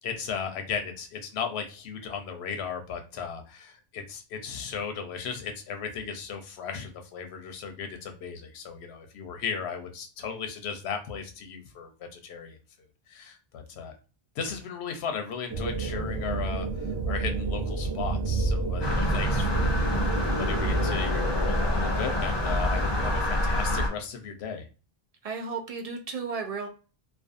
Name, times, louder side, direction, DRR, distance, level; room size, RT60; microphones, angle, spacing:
voice 1, 0.0-12.6 13.1-13.9 14.4-19.7 20.3-24.6, left 6 dB, 85° left, 6 dB, 0.9 m, -36 dB
sound 1, 15.5-20.9, right 4 dB, 85° right, 0.9 m, -30 dB
sound 2, 18.8-23.9, left 1 dB, 30° left, 0.5 m, -26 dB
voice 2, 25.2-26.7, right 5 dB, 55° right, 4 dB, 0.4 m, -34 dB
2.5 x 2.3 x 2.4 m, 0.35 s
omnidirectional pair, 1.1 m